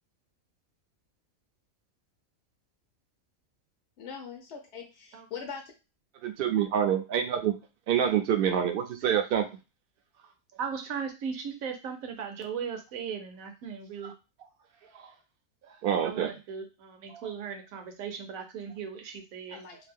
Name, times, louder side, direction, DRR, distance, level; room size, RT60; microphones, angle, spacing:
voice 1, 4.0-5.7 19.5-19.8, left 6 dB, 60° left, 1 dB, 0.8 m, -41 dB
voice 2, 6.2-7.5 7.9-9.4 15.8-16.3 17.1-17.3, right 9 dB, 60° right, 6 dB, 0.6 m, -26 dB
voice 3, 10.6-14.1 16.0-19.6, right 6 dB, 80° right, 6 dB, 1.1 m, -37 dB
2.7 x 2.4 x 3.5 m, 0.29 s
omnidirectional pair, 1.5 m